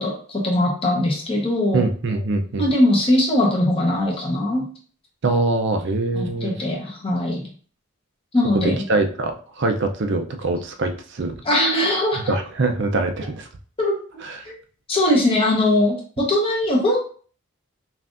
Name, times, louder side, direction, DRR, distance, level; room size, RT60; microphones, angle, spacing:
voice 1, 0.0-1.8 2.6-4.6 6.1-7.4 8.3-8.8 11.4-12.3 13.8-14.5 14.9-17.0, left 1 dB, 25° left, -2 dB, 1.0 m, -21 dB
voice 2, 1.7-2.7 5.2-6.5 8.5-11.3 12.1-13.5 14.2-14.5, right 2 dB, 55° right, 5 dB, 0.5 m, -23 dB
5.6 x 2.5 x 2.5 m, 0.43 s
head